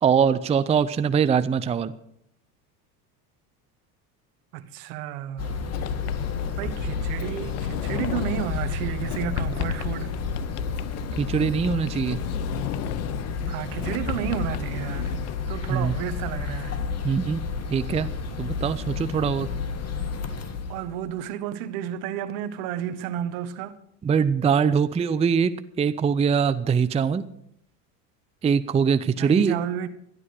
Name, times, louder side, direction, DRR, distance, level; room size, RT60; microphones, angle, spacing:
voice 1, 0.0-1.9 11.2-12.2 15.7-15.9 17.0-17.4 17.7-18.1 18.4-19.5 24.0-25.5 25.8-27.2 28.4-29.6, right 6 dB, 15° right, 0.5 m, -22 dB
voice 2, 4.5-5.6 6.6-10.1 13.5-15.1 15.5-16.7 20.7-23.8 29.1-29.9, right 11 dB, 75° right, 1.3 m, -31 dB
sound 1, 5.4-21.1, left 5 dB, 35° left, 1.8 m, -31 dB
Sliding door, 5.7-15.4, left 14 dB, 90° left, 0.7 m, -35 dB
12.5 x 11.0 x 6.5 m
supercardioid pair, 100°, 44 cm